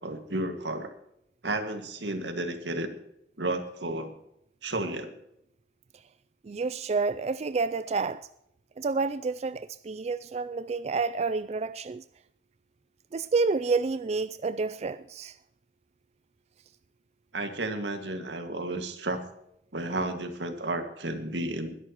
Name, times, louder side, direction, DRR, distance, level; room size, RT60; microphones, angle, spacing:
voice 1, 0.0-0.9 1.4-2.9 3.4-4.1 4.6-5.1 17.3-19.2 19.7-21.8, right 2 dB, 85° right, 2.0 m, -32 dB
voice 2, 6.4-8.2 8.8-12.0 13.1-15.3, right 4 dB, 35° right, 0.4 m, -29 dB
21.0 x 11.0 x 3.0 m
head